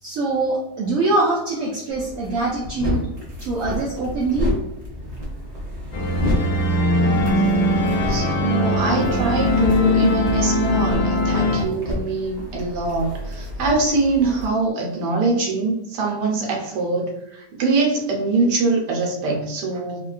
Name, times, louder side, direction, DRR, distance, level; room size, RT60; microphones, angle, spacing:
voice 1, 0.0-3.1 3.4-4.6, right 2 dB, 65° right, -5 dB, 0.9 m, -23 dB
sound 1, 1.9-14.5, left 1 dB, 40° right, 0.6 m, -31 dB
sound 2, 5.9-11.7, left 1 dB, 90° left, 1.2 m, -20 dB
voice 2, 8.1-20.1, right 3 dB, 80° right, 0 dB, 1.3 m, -23 dB
3.6 x 2.2 x 2.4 m, 0.86 s
omnidirectional pair, 1.8 m